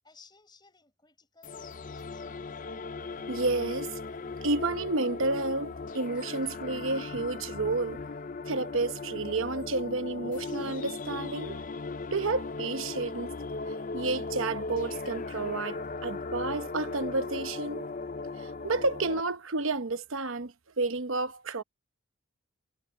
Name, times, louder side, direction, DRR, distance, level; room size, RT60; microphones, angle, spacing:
voice 1, 0.0-2.6, left 4 dB, 20° left, 5.2 m, -59 dB
sound 1, 1.4-19.2, left 3 dB, 35° left, 0.5 m, -37 dB
voice 2, 3.3-4.0 4.4-8.0 8.5-11.6 12.1-13.3 13.9-17.9 18.4-21.6, right 3 dB, 70° right, 0.9 m, -31 dB
head